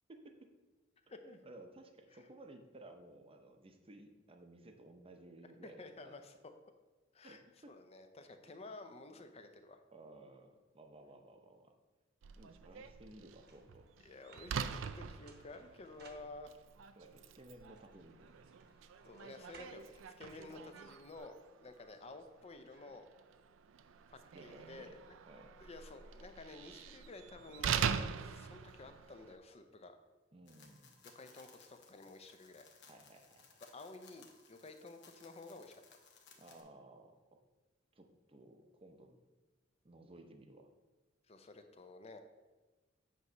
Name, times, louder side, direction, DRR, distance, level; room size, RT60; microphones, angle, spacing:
voice 1, 0.1-0.5 1.2-6.1 7.2-7.7 8.4-8.5 9.1-9.3 9.9-11.7 12.4-13.9 17.0-18.5 20.5-20.7 24.3-25.0 25.3-25.6 30.3-31.0 32.9-33.6 36.4-37.2 37.9-39.2 39.8-40.7, right 1 dB, 30° right, 5 dB, 0.6 m, -57 dB
voice 2, 1.1-1.4 5.6-6.3 7.1-7.4 7.7-9.8 14.0-16.6 19.0-23.1 24.1-25.2 25.6-29.9 31.1-32.6 33.7-35.8 41.3-42.2, left 2 dB, 30° left, 7 dB, 0.6 m, -52 dB
Slam, 12.2-29.4, right 7 dB, 70° right, 0.4 m, -44 dB
sound 1, 13.4-16.8 17.3-21.2, right 3 dB, 55° right, 1.0 m, -63 dB
sound 2, 30.5-36.6, left 5 dB, 60° left, 1.0 m, -63 dB
8.1 x 3.1 x 5.6 m, 1.2 s
head